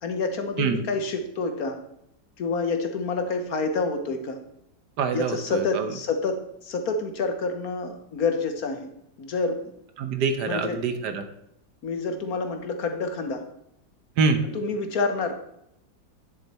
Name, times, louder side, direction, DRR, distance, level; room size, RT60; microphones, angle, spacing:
voice 1, 0.0-1.8 2.4-4.4 5.1-8.9 9.2-9.6 10.5-10.8 11.8-13.4 14.5-15.3, left 3 dB, 60° left, 6 dB, 1.3 m, -28 dB
voice 2, 5.0-5.9 10.0-11.3 14.2-14.5, right 5 dB, 70° right, 8 dB, 1.4 m, -25 dB
10.5 x 6.8 x 4.2 m, 0.79 s
omnidirectional pair, 2.0 m